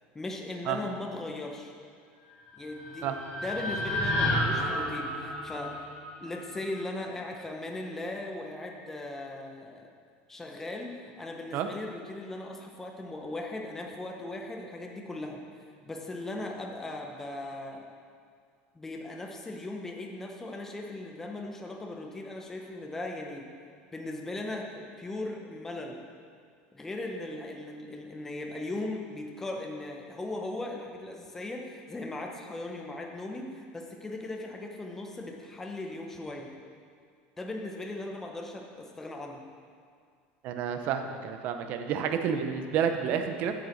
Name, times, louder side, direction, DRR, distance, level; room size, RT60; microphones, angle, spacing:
voice 1, 0.1-1.7 2.6-3.1 3.4-5.7 6.2-9.9 10.3-15.4 15.8-17.8 18.7-23.5 23.9-26.0 26.7-36.5 37.4-39.4, left 2 dB, 10° left, 1 dB, 0.8 m, -38 dB
sound 1, 2.4-6.7, left 1 dB, 35° left, 2.4 m, -31 dB
voice 2, 40.4-43.5, right 7 dB, 40° right, 6 dB, 0.7 m, -30 dB
8.8 x 6.7 x 6.5 m, 2.1 s
cardioid pair, 170°, 4 cm